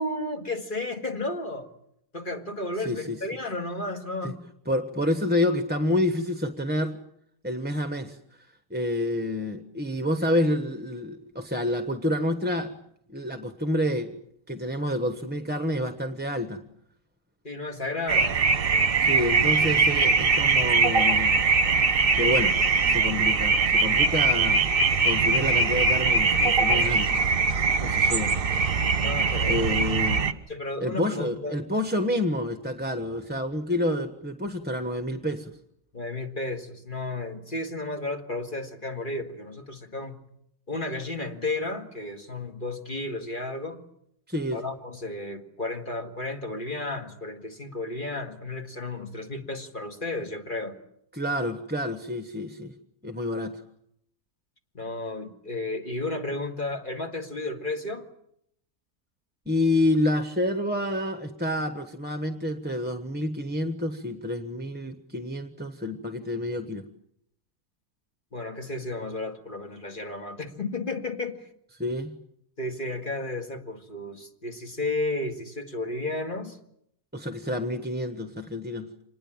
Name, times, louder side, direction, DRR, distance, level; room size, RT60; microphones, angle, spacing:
voice 1, 0.0-1.7 2.1-4.4 17.4-18.4 29.0-29.8 30.5-31.6 35.9-40.2 40.7-43.8 44.5-50.8 54.7-58.1 68.3-71.5 72.6-76.6, left 2 dB, 35° left, 5 dB, 2.1 m, -33 dB
voice 2, 2.8-3.2 4.2-4.3 4.7-7.0 7.4-12.7 13.1-14.1 14.5-16.6 19.0-21.4 22.1-22.5 22.9-24.7 25.0-27.3 27.8-28.4 29.5-30.3 30.8-35.6 44.3-44.6 51.1-52.7 53.0-53.6 59.5-66.9 71.8-72.1 77.1-78.9, left 1 dB, 5° right, 8 dB, 1.1 m, -28 dB
sound 1, 18.1-30.3, right 4 dB, 40° right, 1.4 m, -22 dB
26.0 x 20.5 x 8.9 m, 0.74 s
omnidirectional pair, 1.6 m